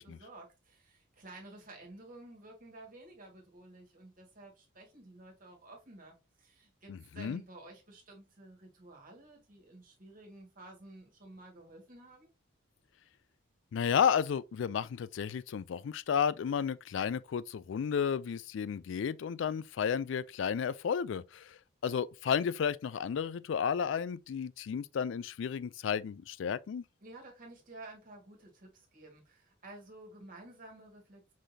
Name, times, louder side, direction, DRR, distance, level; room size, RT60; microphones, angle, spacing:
voice 1, 0.0-12.3 27.0-31.3, right 2 dB, 40° right, 1.8 m, -52 dB
voice 2, 6.9-7.4 13.7-26.8, left 7 dB, 65° left, 0.3 m, -32 dB
5.1 x 3.9 x 2.7 m
head